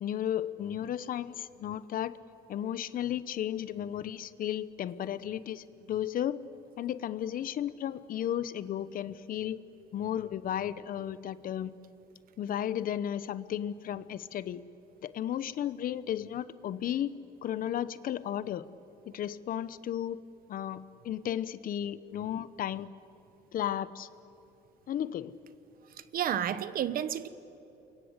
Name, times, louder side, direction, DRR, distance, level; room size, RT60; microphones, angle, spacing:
voice 1, 0.0-2.2 2.5-6.4 6.8-9.6 9.9-11.7 12.4-14.6 15.0-17.2 17.4-18.6 19.1-20.2 20.5-22.9 23.5-24.1 24.9-25.3, left 10 dB, 55° left, 16 dB, 1.0 m, -34 dB
voice 2, 26.1-27.3, right 10 dB, 60° right, 14 dB, 1.2 m, -30 dB
29.0 x 24.0 x 8.3 m, 2.9 s
cardioid pair, 110°, 17 cm